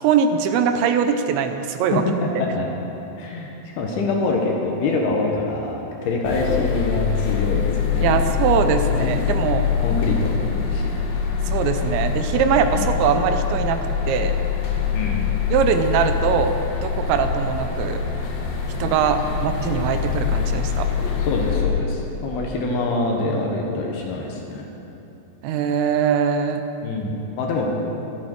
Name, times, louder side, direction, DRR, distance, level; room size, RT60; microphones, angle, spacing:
voice 1, 0.0-2.0 8.0-9.7 11.5-14.4 15.5-16.6 16.8-18.0 18.8-20.9 25.4-26.6, right 7 dB, 80° right, 7 dB, 2.9 m, -21 dB
voice 2, 1.9-2.7 3.2-8.2 9.0-9.4 9.8-10.8 12.7-12.9 14.9-15.2 21.3-24.7 26.8-27.7, left 2 dB, 70° left, 0 dB, 2.9 m, -25 dB
sound 1, 6.3-21.7, left 7 dB, 85° left, 3.9 m, -24 dB
24.0 x 8.5 x 4.6 m, 2.9 s
omnidirectional pair, 5.2 m